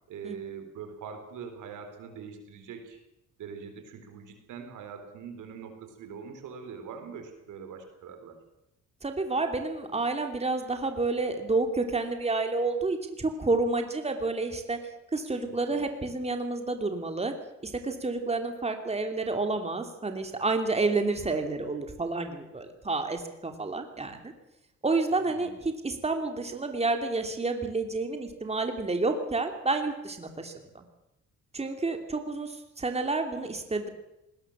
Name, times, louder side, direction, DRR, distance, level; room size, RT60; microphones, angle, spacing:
voice 1, 0.1-3.0 3.4-8.4 15.4-15.8 25.3-25.6, right 6 dB, 80° right, 6 dB, 4.4 m, -43 dB
voice 2, 9.0-14.8 15.1-17.3 17.6-24.3 24.8-30.9 31.5-33.9, right 3 dB, 20° right, 5 dB, 3.0 m, -29 dB
20.0 x 19.5 x 7.5 m, 0.89 s
cardioid pair, 90°, 30 cm